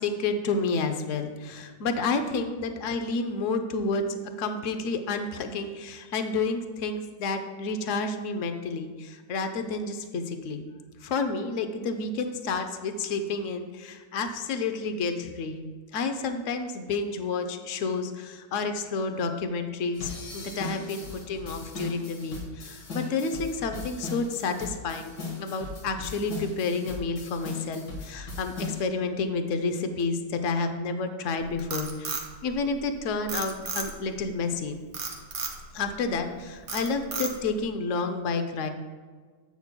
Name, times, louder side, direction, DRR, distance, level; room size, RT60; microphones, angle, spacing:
voice 1, 0.0-10.7 11.0-15.6 15.9-25.1 25.4-34.8 35.7-38.7, left 4 dB, 60° left, 7 dB, 0.8 m, -30 dB
sound 1, 19.9-28.8, left 4 dB, 85° left, 2.1 m, -38 dB
Frog, 31.4-32.9 33.3-34.2 34.9-35.6 36.1-36.3 36.7-37.6, right 5 dB, 55° right, 1.4 m, -33 dB
10.5 x 8.4 x 2.2 m, 1.5 s
omnidirectional pair, 1.9 m